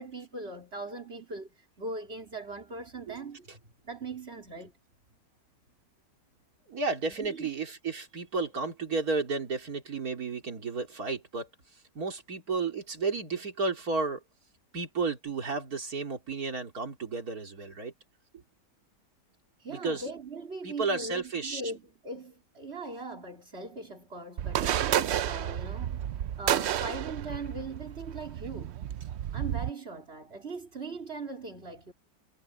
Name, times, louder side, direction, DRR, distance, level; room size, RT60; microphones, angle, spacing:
voice 1, 0.0-3.5 3.8-4.7 7.2-7.5 19.6-28.8 29.3-31.9, right 3 dB, 35° right, 3.9 m, -40 dB
voice 2, 6.7-11.5 11.9-14.2 14.7-17.9 18.3-18.4 19.7-20.0 20.6-21.6, right 4 dB, 55° right, 3.5 m, -32 dB
sound 1, 24.4-29.7, right 10 dB, 90° right, 0.5 m, -31 dB
omnidirectional pair, 1.8 m